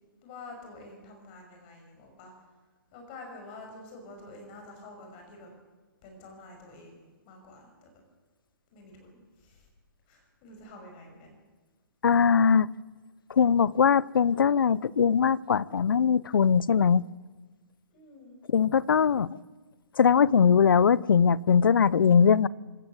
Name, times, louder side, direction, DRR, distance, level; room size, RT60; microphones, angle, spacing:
voice 1, 0.2-2.3 2.9-5.5 6.0-7.9 8.7-9.7 10.1-11.4 17.9-18.4, left 2 dB, 25° left, 6.0 m, -48 dB
voice 2, 12.0-12.7 13.3-17.0 18.5-19.4 20.0-22.5, left 6 dB, 75° left, 0.7 m, -21 dB
26.0 x 13.5 x 8.0 m
hypercardioid pair, 165°, 11 cm